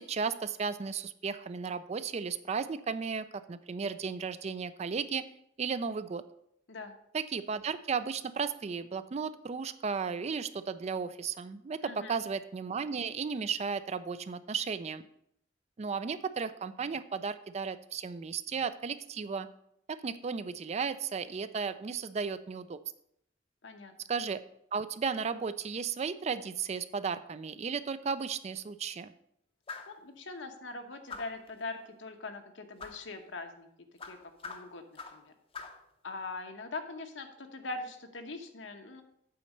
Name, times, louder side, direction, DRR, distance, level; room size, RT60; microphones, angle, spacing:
voice 1, 0.0-5.2 5.6-6.2 7.1-15.0 15.8-19.5 19.9-22.8 24.1-24.4 24.7-29.1, right 5 dB, 35° right, 13 dB, 0.4 m, -34 dB
voice 2, 11.8-12.2 23.6-23.9 29.9-33.7 34.0-34.8 35.1-35.3 36.0-39.0, left 3 dB, 75° left, 6 dB, 1.0 m, -42 dB
sound 1, 29.7-30.0 31.1-31.5 32.8-33.0 34.0-35.3 35.5-35.8, left 4 dB, 30° left, 0.7 m, -44 dB
8.5 x 4.2 x 6.4 m, 0.73 s
head